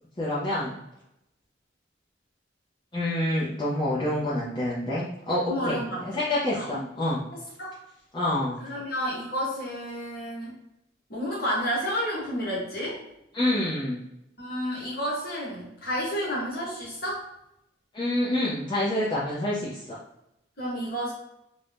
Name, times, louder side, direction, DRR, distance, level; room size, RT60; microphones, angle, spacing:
voice 1, 0.2-0.7 2.9-7.2 8.1-8.6 13.3-14.0 17.9-20.0, left 1 dB, 25° left, -8 dB, 0.5 m, -27 dB
voice 2, 5.4-6.2 6.5-6.9 7.3-7.8 8.6-10.5 11.1-13.0 14.4-17.2 20.6-21.1, equal, 50° left, -5 dB, 1.1 m, -31 dB
2.5 x 2.1 x 3.2 m, 0.84 s
head